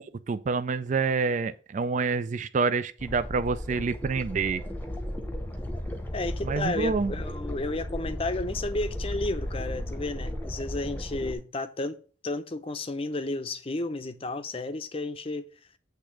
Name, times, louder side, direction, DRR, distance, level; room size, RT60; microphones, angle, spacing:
voice 1, 0.3-4.6 6.4-7.1, right 4 dB, 40° right, 0.4 m, -27 dB
sound 1, 3.0-11.3, left 1 dB, 10° left, 0.9 m, -35 dB
voice 2, 6.1-12.0 12.2-15.5, left 2 dB, 30° left, 0.6 m, -32 dB
8.2 x 3.4 x 6.2 m
head